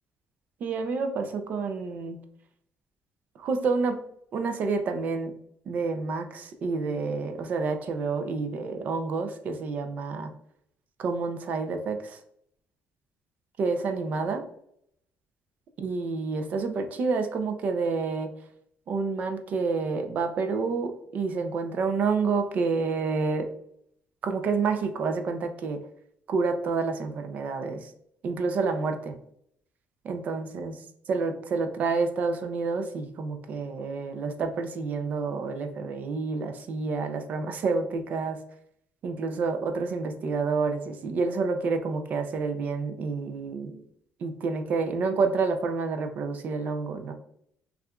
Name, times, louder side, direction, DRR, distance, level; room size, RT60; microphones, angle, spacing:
voice 1, 0.6-2.2 3.4-4.0 4.3-5.3 5.7-10.3 11.0-12.2 13.6-14.5 15.8-18.3 18.9-23.5 24.2-25.9 26.3-27.9 28.2-29.2 30.0-30.7 31.1-38.4 39.0-43.8 44.2-47.1, right 4 dB, 40° right, 7 dB, 0.4 m, -29 dB
6.3 x 2.4 x 2.3 m, 0.72 s
cardioid pair, 180°, 4 cm